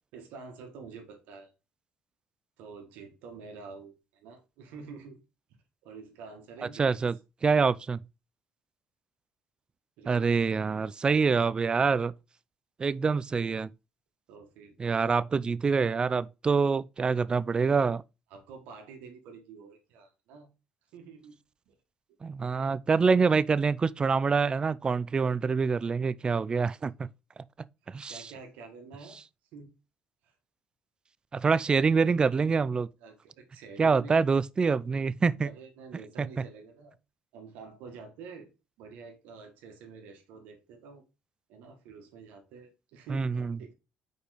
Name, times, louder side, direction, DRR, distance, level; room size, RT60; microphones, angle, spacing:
voice 1, 0.1-1.5 2.6-5.2 5.8-7.0 10.0-10.3 14.3-14.8 15.8-16.0 18.3-20.5 20.9-21.4 21.7-21.8 22.1-22.2 27.0-27.1 28.1-29.2 29.5-29.7 30.2-30.3 32.7-34.2 35.4-36.9 37.3-38.5 38.8-41.0 41.5-43.7, right 5 dB, 80° right, 1.6 m, -48 dB
voice 2, 6.8-7.2 7.4-8.0 10.1-12.1 12.8-13.7 14.8-18.0 22.2-27.1 27.9-28.3 31.3-32.9 33.8-35.5 36.2-36.3 43.1-43.6, right 5 dB, 30° right, 0.4 m, -26 dB
4.9 x 4.4 x 4.9 m
supercardioid pair, 75°, 3 cm